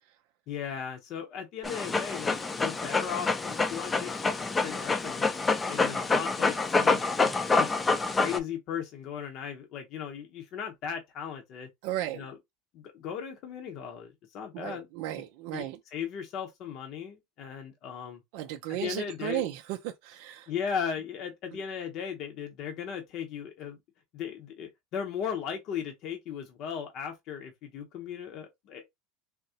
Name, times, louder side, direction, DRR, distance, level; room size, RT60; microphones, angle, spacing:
voice 1, 0.5-4.1 4.6-5.3 5.7-7.7 8.1-11.7 12.1-12.4 12.7-14.9 15.5-18.2 18.7-19.5 20.5-23.8 24.1-28.9, left 8 dB, 55° left, 0.7 m, -37 dB
Dog, 1.6-8.4, left 3 dB, 20° left, 0.5 m, -27 dB
voice 2, 11.8-12.3 14.5-15.8 18.3-20.5, right 13 dB, 70° right, 0.4 m, -35 dB
3.6 x 2.0 x 2.7 m
supercardioid pair, 105°, 0 cm